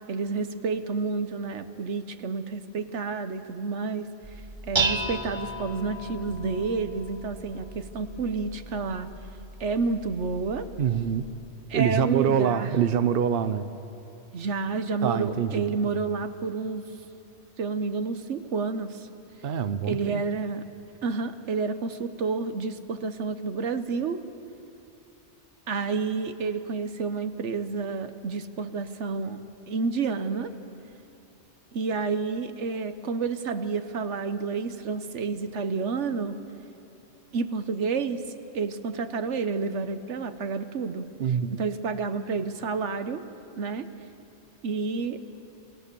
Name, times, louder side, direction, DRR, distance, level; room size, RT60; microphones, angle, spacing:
voice 1, 0.1-4.1 4.7-9.1 9.6-10.7 11.7-12.7 14.3-16.9 17.6-19.0 19.9-20.6 21.0-24.2 25.7-29.4 29.7-30.5 31.7-36.4 37.3-38.2 38.5-41.1 41.5-43.2 43.6-43.9 44.6-45.2, right 4 dB, 80° right, 10 dB, 1.3 m, -29 dB
Dishes pots and pans, 4.2-11.3, right 3 dB, 25° right, 1.3 m, -35 dB
voice 2, 10.8-11.2 11.7-13.7 15.0-15.8 19.4-20.2 41.2-41.6, right 8 dB, 55° right, 11 dB, 0.9 m, -25 dB
29.5 x 18.5 x 6.9 m, 2.9 s
omnidirectional pair, 1.2 m